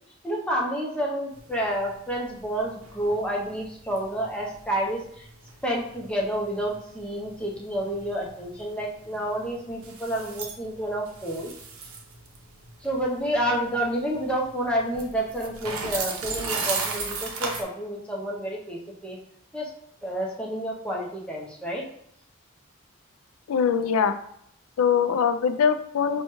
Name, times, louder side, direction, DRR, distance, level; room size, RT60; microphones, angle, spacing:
voice 1, 0.2-5.3 5.6-11.5 12.8-19.2 19.5-19.7 20.0-21.8, right 1 dB, 5° left, -3 dB, 0.6 m, -29 dB
sound 1, 1.3-17.6, right 4 dB, 85° right, 0.6 m, -37 dB
voice 2, 23.5-24.1 24.8-26.2, left 7 dB, 85° left, 10 dB, 0.3 m, -22 dB
4.4 x 2.2 x 3.0 m, 0.70 s
head